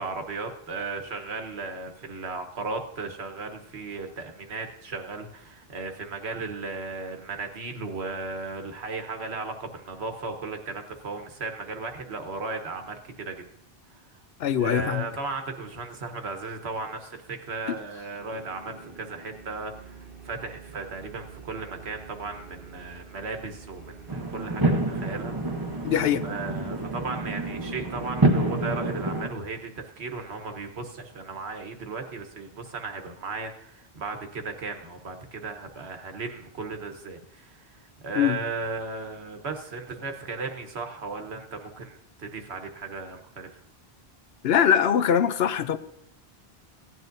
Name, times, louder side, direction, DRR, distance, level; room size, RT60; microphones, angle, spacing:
voice 1, 0.0-13.4 14.6-25.3 25.7-25.9 26.2-43.5, right 3 dB, 85° right, 1.4 m, -36 dB
voice 2, 14.4-15.0 17.7-17.8 25.8-26.3 38.2-38.4 44.4-45.8, left 8 dB, 75° left, 0.9 m, -22 dB
sound 1, 18.2-28.9, right 5 dB, 65° right, 1.2 m, -47 dB
sound 2, 24.1-29.3, right 2 dB, 25° right, 0.8 m, -27 dB
16.0 x 9.4 x 2.6 m
omnidirectional pair, 1.1 m